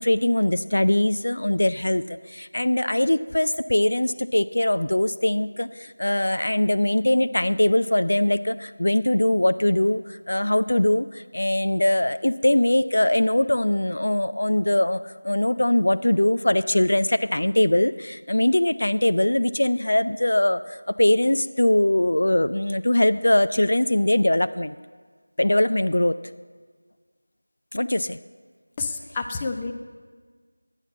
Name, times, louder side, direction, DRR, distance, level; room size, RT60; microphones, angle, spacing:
voice 1, 0.0-24.7 25.4-26.2 27.7-28.2, left 1 dB, 65° left, 13 dB, 0.4 m, -21 dB
voice 2, 28.8-29.7, left 4 dB, 15° left, 6 dB, 0.6 m, -29 dB
10.5 x 8.9 x 7.2 m, 1.5 s
figure-of-eight pair, 170°, 0 cm